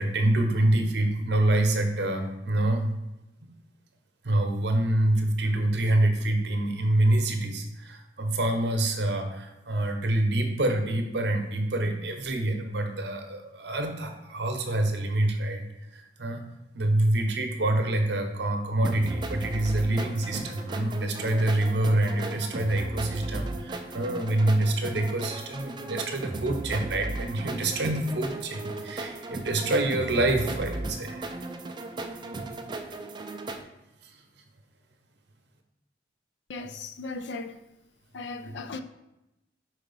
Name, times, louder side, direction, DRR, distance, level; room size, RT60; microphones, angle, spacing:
voice 1, 0.0-2.9 4.2-15.7 15.9-16.5 16.7-31.4 34.0-34.1, right 1 dB, 65° right, 0.8 m, -26 dB
sound 1, 18.8-33.6, right 2 dB, 25° right, 0.4 m, -36 dB
voice 2, 36.5-37.6 38.1-38.8, left 3 dB, 75° left, 0.5 m, -37 dB
4.8 x 4.0 x 5.4 m
head